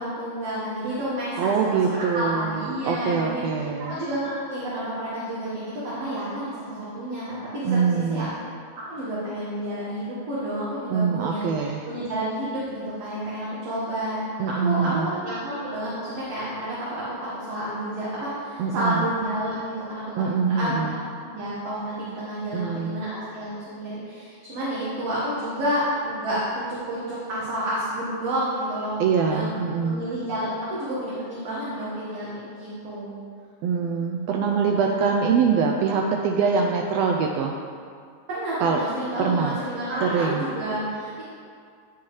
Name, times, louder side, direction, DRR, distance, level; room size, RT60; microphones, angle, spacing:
voice 1, 0.0-7.8 8.1-8.3 8.9-14.3 14.6-17.0 17.5-20.0 20.6-20.8 21.2-26.6 26.9-28.9 29.2-29.4 29.8-33.2 34.5-34.9 38.3-41.2, right 1 dB, 60° right, -9 dB, 2.3 m, -30 dB
voice 2, 1.4-4.0 7.6-8.3 10.9-11.8 14.4-15.1 18.6-19.0 20.2-20.9 22.5-23.0 29.0-30.1 33.6-37.5 38.6-38.8 39.2-39.6 40.0-40.4, right 5 dB, 80° right, 1 dB, 1.5 m, -24 dB
9.9 x 7.0 x 3.1 m, 2.2 s
omnidirectional pair, 3.4 m